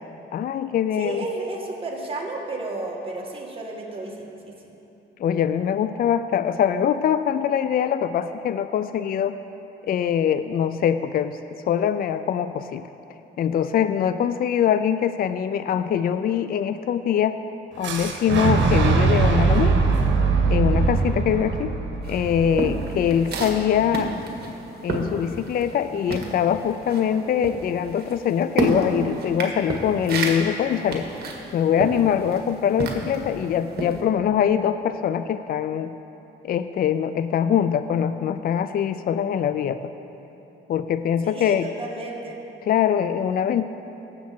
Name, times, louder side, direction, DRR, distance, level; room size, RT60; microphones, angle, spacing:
voice 1, 0.3-1.2 5.2-9.4 9.9-12.9 13.4-17.4 17.8-19.8 20.5-21.8 22.0-24.2 24.8-31.1 31.5-35.9 36.4-39.8 40.7-41.7 42.6-43.7, left 9 dB, 50° left, 12 dB, 0.4 m, -23 dB
voice 2, 1.0-4.7 41.2-42.4, right 2 dB, 30° right, -2 dB, 2.1 m, -33 dB
Boom, 17.8-23.7, right 4 dB, 70° right, 1.3 m, -22 dB
sound 1, 22.0-25.8 26.1-33.3 33.7-34.0, right 3 dB, 55° right, 1.7 m, -29 dB
17.5 x 7.2 x 4.4 m, 3.0 s
cardioid pair, 90°, 20 cm